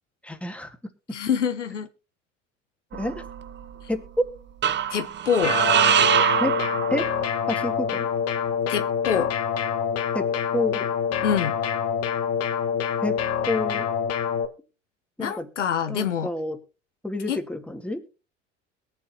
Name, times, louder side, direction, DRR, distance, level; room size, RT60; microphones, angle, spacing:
voice 1, 0.2-0.7 3.0-3.2 3.9-4.0 6.4-6.5 6.9-7.1 7.5-8.1 10.1-10.3 10.5-10.9 13.0-13.2 13.5-13.8 15.2-15.5 15.9-16.6 17.0-18.0, left 1 dB, 5° left, 5 dB, 2.1 m, -29 dB
voice 2, 1.1-1.9 4.9-5.6 8.7-9.3 11.2-11.6 15.2-16.3 17.3-17.4, left 7 dB, 90° left, 10 dB, 0.8 m, -25 dB
sound 1, 2.9-3.7 4.6-7.5, right 9 dB, 30° right, 0.7 m, -23 dB
sound 2, 5.4-14.4, left 7 dB, 45° left, 1.6 m, -26 dB
21.5 x 7.4 x 2.9 m, 0.32 s
hypercardioid pair, 65°, 35 cm